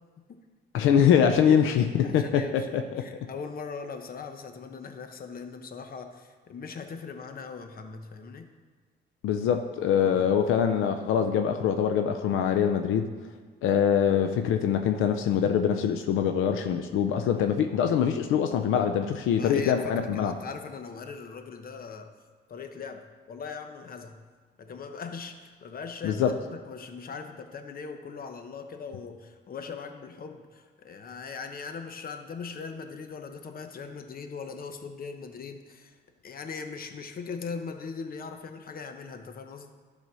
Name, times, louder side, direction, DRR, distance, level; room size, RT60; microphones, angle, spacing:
voice 1, 0.7-3.0 9.2-13.1 13.6-20.4 26.0-26.3, left 8 dB, 90° left, 7 dB, 0.5 m, -24 dB
voice 2, 2.0-2.7 3.0-8.5 10.0-10.3 19.3-22.1 22.5-24.2 24.6-36.0 36.2-39.7, left 5 dB, 45° left, 6 dB, 1.0 m, -40 dB
11.5 x 4.1 x 6.2 m, 1.5 s
cardioid pair, 90°, 20 cm